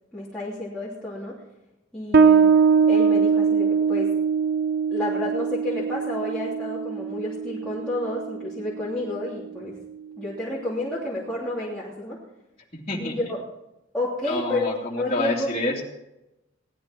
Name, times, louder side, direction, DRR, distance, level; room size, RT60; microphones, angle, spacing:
voice 1, 0.1-1.4 1.9-2.5 2.9-4.1 4.9-9.8 10.2-12.2 13.0-13.4 13.9-14.7 15.0-15.5, left 1 dB, 5° left, -9 dB, 3.2 m, -30 dB
Bass guitar, 2.1-9.3, right 6 dB, 50° right, 0.8 m, -22 dB
voice 2, 12.7-13.2 14.3-15.8, left 2 dB, 30° left, -8 dB, 2.7 m, -28 dB
18.0 x 13.0 x 4.5 m, 0.91 s
head